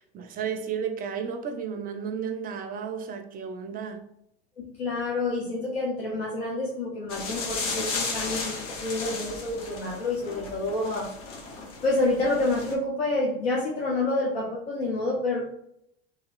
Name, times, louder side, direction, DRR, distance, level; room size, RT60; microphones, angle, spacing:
voice 1, 0.0-4.0, right 7 dB, 30° right, 0.5 m, -33 dB
voice 2, 4.6-11.1 11.8-15.4, left 2 dB, 75° left, 0.7 m, -28 dB
sound 1, 7.1-12.7, left 4 dB, 45° left, 0.8 m, -35 dB
2.9 x 2.7 x 2.4 m
hypercardioid pair, 80°, 31 cm